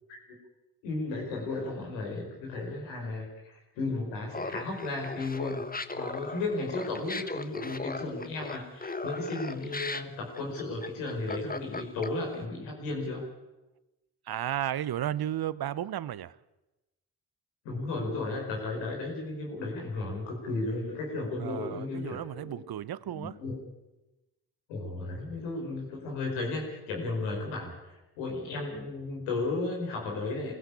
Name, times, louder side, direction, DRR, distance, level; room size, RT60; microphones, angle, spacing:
voice 1, 0.8-5.6 5.9-13.3 17.7-22.6 23.1-23.6 24.7-30.5, left 3 dB, 85° left, 5.1 m, -34 dB
Laughter, 4.3-12.4, left 3 dB, 20° left, 1.4 m, -37 dB
voice 2, 14.3-16.4 21.4-23.4, right 11 dB, 55° right, 0.9 m, -33 dB
23.0 x 16.0 x 8.4 m
hypercardioid pair, 40°, 43 cm